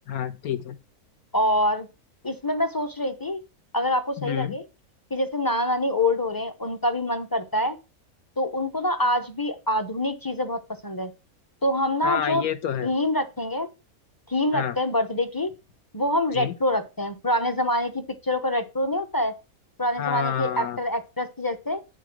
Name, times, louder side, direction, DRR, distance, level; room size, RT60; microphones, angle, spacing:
voice 1, 0.1-0.7 4.2-4.5 12.0-12.9 14.5-14.7 16.3-16.5 20.0-20.8, left 8 dB, 80° left, 1.4 m, -28 dB
voice 2, 1.3-1.9 2.2-3.4 3.7-4.6 5.1-7.8 8.4-11.1 11.6-12.4 12.8-13.7 14.3-15.5 15.9-19.3 19.8-21.8, left 1 dB, 20° left, 0.6 m, -25 dB
10.5 x 3.9 x 5.9 m
omnidirectional pair, 1.5 m